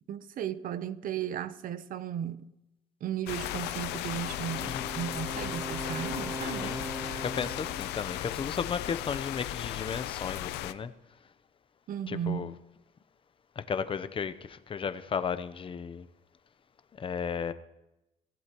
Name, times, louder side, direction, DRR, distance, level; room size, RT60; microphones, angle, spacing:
voice 1, 0.1-2.5 3.0-6.8 11.9-12.6, right 9 dB, 55° right, 0.8 m, -35 dB
sound 1, 3.3-10.7, left 14 dB, 85° left, 0.6 m, -36 dB
Wind instrument woodwind instrument, 4.2-8.0, right 1 dB, 10° right, 0.7 m, -40 dB
voice 2, 6.4-6.8 7.2-10.9 12.1-12.5 13.6-16.0 17.0-17.5, left 6 dB, 30° left, 0.8 m, -34 dB
23.5 x 15.5 x 3.1 m
cardioid pair, 110°, 17 cm